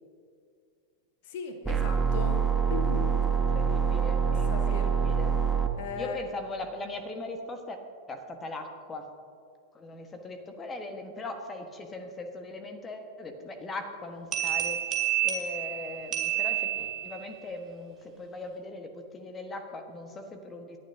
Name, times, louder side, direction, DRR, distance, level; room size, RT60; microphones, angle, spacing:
voice 1, 1.2-3.2 4.3-4.9 5.8-6.2, left 5 dB, 50° left, 6 dB, 1.2 m, -37 dB
sound 1, 1.6-5.7, right 6 dB, 10° right, 1.3 m, -25 dB
voice 2, 3.3-5.4 6.0-7.8 8.1-9.1 9.7-14.8 15.2-20.8, left 2 dB, 20° left, 5 dB, 1.4 m, -40 dB
sound 2, 14.3-17.3, right 12 dB, 30° right, 2.3 m, -29 dB
28.5 x 11.5 x 2.8 m, 2.2 s
figure-of-eight pair, 90°, 0 cm